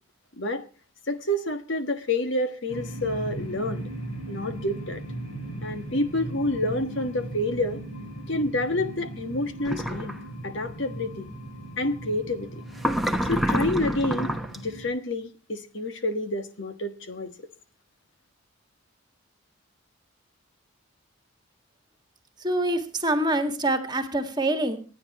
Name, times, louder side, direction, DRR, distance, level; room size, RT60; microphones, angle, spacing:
voice 1, 1.1-3.9 4.3-5.0 5.6-7.8 8.3-10.2 10.4-11.3 11.8-12.6 13.3-14.4 14.6-17.3, left 1 dB, 55° left, 1.4 m, -28 dB
sound 1, 2.7-14.9, right 1 dB, 85° left, 7.2 m, -38 dB
sound 2, 9.6-10.2 12.8-14.6, equal, ahead, 0.9 m, -27 dB
voice 2, 22.4-24.8, right 1 dB, 20° right, 1.8 m, -25 dB
26.0 x 9.8 x 3.0 m
head